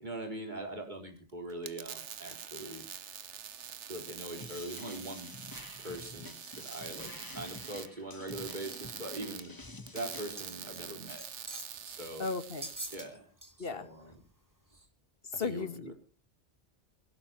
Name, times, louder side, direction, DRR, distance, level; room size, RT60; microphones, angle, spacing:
voice 1, 0.0-2.9 3.9-5.3 5.8-9.5 9.9-11.2 11.9-12.3 12.9-13.3 13.6-14.1 14.7-14.9 15.4-15.9, right 1 dB, 40° right, 3 dB, 4.4 m, -42 dB
sound 1, 1.5-13.0, right 8 dB, 85° right, 1.3 m, -45 dB
sound 2, 4.4-10.3, left 2 dB, 20° left, 1.1 m, -49 dB
sound 3, 10.4-10.8 11.1-11.8 12.6-13.1 13.4-13.6 14.1-14.2, right 1 dB, 15° right, 2.9 m, -43 dB
voice 2, 12.2-12.7 13.6-13.9 15.2-15.9, left 4 dB, 55° left, 12 dB, 1.6 m, -35 dB
23.5 x 17.5 x 3.0 m, 0.39 s
omnidirectional pair, 1.2 m